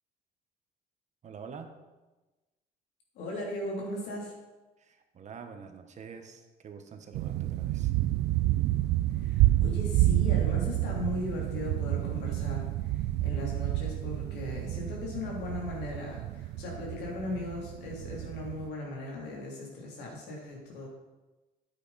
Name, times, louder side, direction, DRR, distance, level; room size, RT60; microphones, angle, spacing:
voice 1, 1.2-1.7 4.8-7.9, right 6 dB, 45° right, 7 dB, 1.1 m, -46 dB
voice 2, 3.1-4.3 9.2-12.6 12.9-20.9, left 2 dB, 80° left, -1 dB, 3.1 m, -38 dB
sound 1, 7.1-18.7, right 15 dB, 80° right, 0.4 m, -29 dB
9.7 x 8.4 x 4.1 m, 1.2 s
cardioid pair, 110°, 17 cm